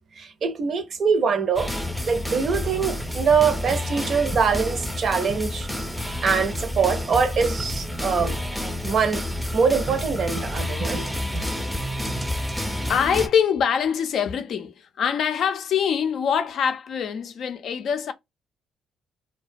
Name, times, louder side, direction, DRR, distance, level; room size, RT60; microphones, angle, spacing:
voice 1, 0.2-1.7 2.1-5.7 6.2-8.4 8.8-9.2 9.5-11.0, right 5 dB, 55° right, 0.5 m, -23 dB
sound 1, 1.6-13.3, left 1 dB, ahead, 0.5 m, -29 dB
voice 2, 12.9-18.1, left 7 dB, 65° left, 0.4 m, -24 dB
2.4 x 2.2 x 2.5 m
cardioid pair, 90°, 0 cm